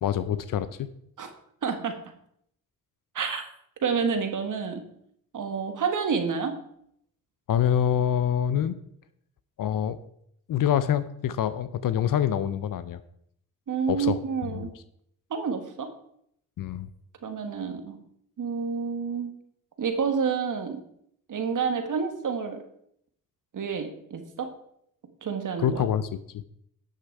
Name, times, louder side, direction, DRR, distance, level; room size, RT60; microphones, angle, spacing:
voice 1, 0.0-0.9 7.5-8.8 9.6-10.0 10.5-13.0 13.9-14.2 14.5-14.7 16.6-16.9 25.6-26.4, left 9 dB, 65° left, 14 dB, 0.7 m, -26 dB
voice 2, 1.6-2.0 3.1-3.4 3.8-4.9 5.3-6.5 13.7-14.7 15.3-15.9 17.2-18.0 18.4-19.3 19.8-20.8 21.3-22.6 23.5-24.5 25.2-25.9, right 6 dB, 60° right, 6 dB, 1.6 m, -29 dB
11.5 x 6.6 x 4.6 m, 0.70 s
supercardioid pair, 55°, 35 cm